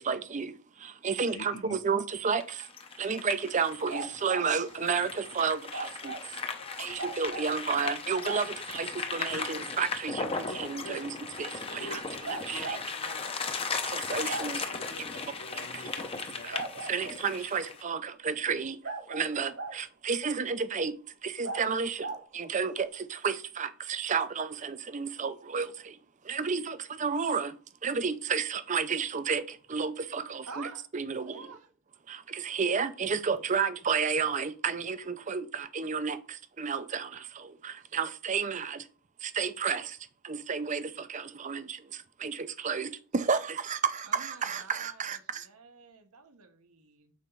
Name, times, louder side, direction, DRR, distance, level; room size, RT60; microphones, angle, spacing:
voice 1, 0.0-2.7 3.0-6.4 6.8-12.8 13.8-14.7 15.1-15.2 15.5-15.9 16.4-18.8 19.1-21.0 21.2-26.0 26.2-27.6 27.8-30.7 30.9-31.5 32.1-38.9 39.2-40.0 40.2-45.5, right 5 dB, 35° right, 0.5 m, -32 dB
voice 2, 1.3-1.8 5.8-7.0 8.7-8.8 9.3-9.5 10.5-11.0 11.7-13.8 14.6-16.6, left 2 dB, 75° left, 0.9 m, -47 dB
sound 1, 2.4-17.8, left 4 dB, 25° left, 0.7 m, -37 dB
sound 2, 3.9-4.5 5.7-6.2 7.0-7.5 8.2-8.4 10.2-10.3 12.2-12.8 14.2-14.5 16.5-17.2 18.8-19.8 21.4-21.6 22.0-22.2, right 3 dB, 60° right, 1.6 m, -37 dB
voice 3, 30.5-30.9 31.1-31.7 44.0-47.1, right 4 dB, 80° right, 1.2 m, -48 dB
6.3 x 4.3 x 5.5 m
head